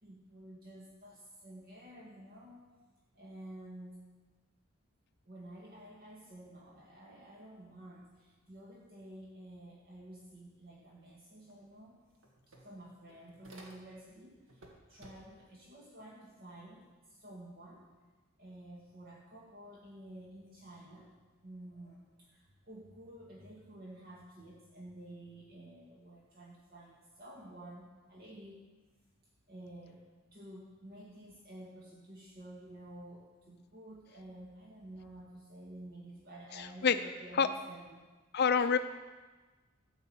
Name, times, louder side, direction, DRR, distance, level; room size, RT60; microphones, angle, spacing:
voice 1, 0.0-2.6 3.2-4.0 5.3-12.0 12.6-17.9 18.4-21.1 21.4-28.6 29.5-30.0 30.3-38.1 38.5-38.8, right 1 dB, 45° right, -4 dB, 1.9 m, -51 dB
sound 1, 11.5-11.6 11.9-14.1 14.5-15.5, right 1 dB, 80° right, 2.1 m, -57 dB
voice 2, 36.6-37.0 37.4-37.5 38.3-38.8, left 6 dB, 50° left, 10 dB, 0.5 m, -27 dB
14.5 x 5.5 x 7.6 m, 1.3 s
head